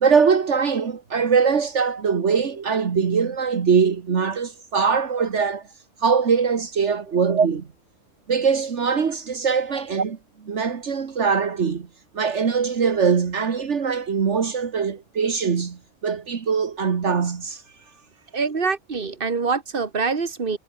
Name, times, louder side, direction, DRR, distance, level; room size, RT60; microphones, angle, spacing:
voice 1, 0.0-5.6 6.0-7.7 8.3-10.2 10.4-11.9 12.1-17.6, right 6 dB, 70° right, 1.8 m, -22 dB
voice 2, 18.3-20.6, right 4 dB, 50° right, 2.1 m, -25 dB
omnidirectional pair, 1.2 m